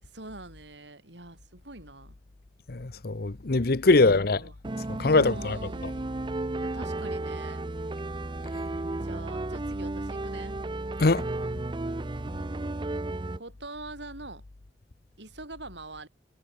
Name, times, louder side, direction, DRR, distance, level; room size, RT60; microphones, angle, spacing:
voice 1, 0.0-2.2 3.9-4.5 5.1-6.2 6.6-7.7 9.0-10.6 13.3-14.4 15.2-16.1, right 2 dB, 75° right, 7.1 m, -44 dB
voice 2, 2.7-4.4 5.0-5.6 11.0-11.2, left 3 dB, 55° left, 0.9 m, -22 dB
sound 1, 4.6-13.4, right 2 dB, 25° right, 0.6 m, -33 dB
head